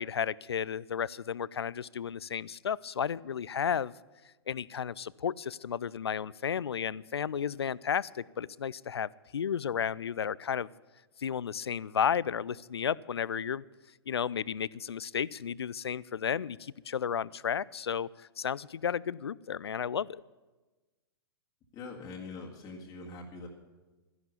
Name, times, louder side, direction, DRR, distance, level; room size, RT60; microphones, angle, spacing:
voice 1, 0.0-3.9 4.5-10.7 11.2-13.6 14.1-20.2, left 8 dB, 80° left, 23 dB, 0.4 m, -33 dB
voice 2, 21.7-23.5, left 3 dB, 25° left, -2 dB, 2.0 m, -43 dB
13.0 x 11.0 x 7.0 m, 1.2 s
figure-of-eight pair, 110°, 13 cm